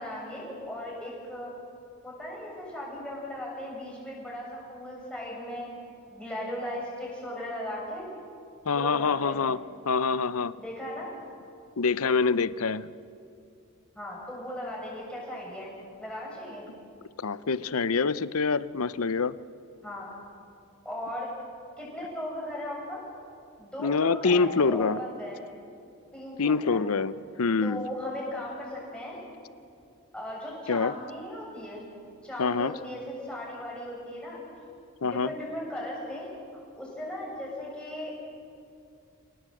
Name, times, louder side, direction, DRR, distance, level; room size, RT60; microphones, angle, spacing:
voice 1, 0.0-1.5 2.0-5.7 6.1-8.1 8.7-9.4 10.6-11.1 13.9-15.7 16.0-16.6 19.8-20.1 20.8-21.3 21.8-23.1 23.6-25.4 26.1-26.8 27.6-29.2 30.1-31.8 32.2-34.4 35.0-38.1, left 1 dB, 5° left, -4 dB, 7.1 m, -37 dB
voice 2, 8.7-9.6 9.8-10.5 11.8-12.9 17.2-19.4 23.8-25.0 26.4-27.8 30.7-30.9 32.4-32.7 35.0-35.3, left 4 dB, 70° left, 16 dB, 0.7 m, -25 dB
27.0 x 18.5 x 7.9 m, 2.5 s
head